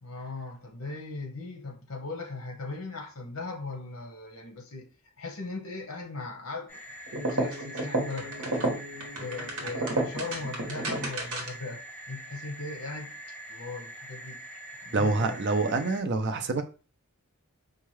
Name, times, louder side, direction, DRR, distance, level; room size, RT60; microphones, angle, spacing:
voice 1, 0.0-4.9 5.2-6.8 7.3-8.5 9.2-13.1 13.5-14.4 14.8-15.4, left 3 dB, 60° left, 0.9 m, -38 dB
sound 1, 6.7-16.0, right 1 dB, 10° left, 1.6 m, -44 dB
sound 2, 7.1-11.7, right 2 dB, 70° right, 1.0 m, -31 dB
voice 2, 14.9-16.6, right 3 dB, 50° right, 0.5 m, -26 dB
4.5 x 2.3 x 3.1 m
head